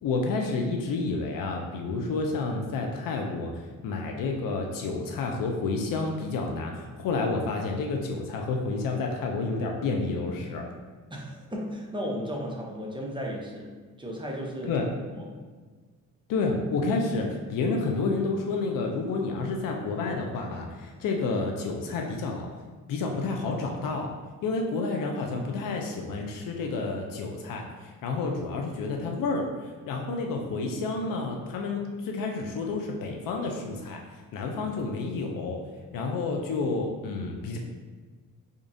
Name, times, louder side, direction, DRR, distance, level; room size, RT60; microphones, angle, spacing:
voice 1, 0.0-10.6 14.6-14.9 16.3-22.5 22.9-24.1 24.4-34.0 34.3-35.6 35.9-37.6, left 3 dB, 85° left, 1 dB, 0.6 m, -30 dB
voice 2, 11.1-13.7 14.0-14.8 15.1-15.4, equal, 15° right, -1 dB, 0.7 m, -35 dB
5.1 x 2.4 x 2.6 m, 1.4 s
cardioid pair, 105°, 32 cm